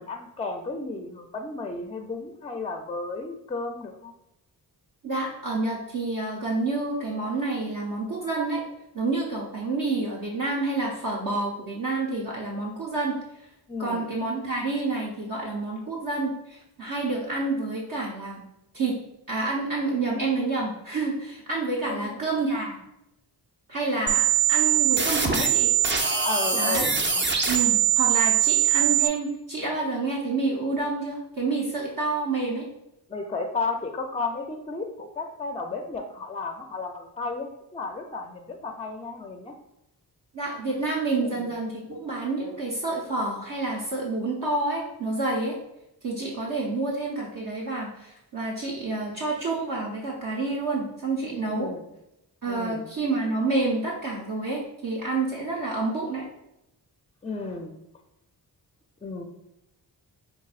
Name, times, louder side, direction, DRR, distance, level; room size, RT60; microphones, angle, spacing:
voice 1, 0.0-4.1 13.7-14.1 21.8-22.1 26.2-27.7 33.1-39.6 41.2-41.5 51.5-51.8 52.5-52.9 57.2-57.8 59.0-59.2, left 3 dB, 15° left, 4 dB, 0.4 m, -33 dB
voice 2, 5.0-8.6 8.9-13.2 13.8-18.4 18.7-18.9 19.3-22.8 23.7-25.7 26.5-26.9 27.5-32.7 40.3-45.6 46.0-51.7 52.4-56.2, right 3 dB, 55° right, -4 dB, 0.9 m, -28 dB
sound 1, 24.1-29.1, right 9 dB, 30° right, 0.5 m, -22 dB
5.8 x 2.6 x 2.4 m, 0.85 s
cardioid pair, 75°, 39 cm